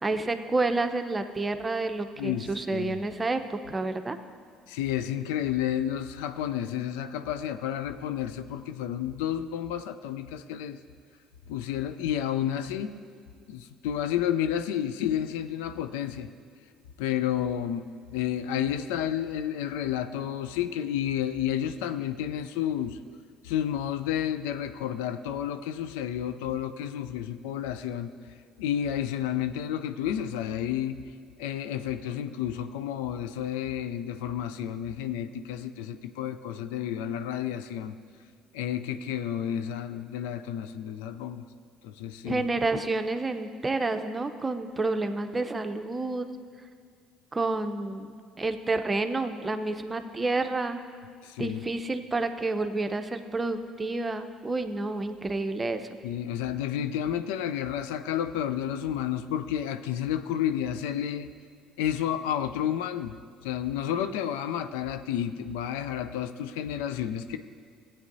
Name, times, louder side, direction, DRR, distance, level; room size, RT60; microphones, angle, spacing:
voice 1, 0.0-4.2 42.2-46.3 47.3-50.8 51.4-55.9, right 3 dB, 25° right, 8 dB, 0.7 m, -29 dB
voice 2, 2.2-3.0 4.7-10.8 11.5-13.0 13.5-16.3 17.0-23.0 23.4-28.1 28.6-31.0 31.4-38.0 38.5-41.4 41.8-42.5 51.2-51.6 56.0-61.3 61.8-67.4, left 10 dB, 75° left, 10 dB, 0.4 m, -31 dB
16.5 x 8.5 x 2.7 m, 2.1 s
hypercardioid pair, 60°, 0 cm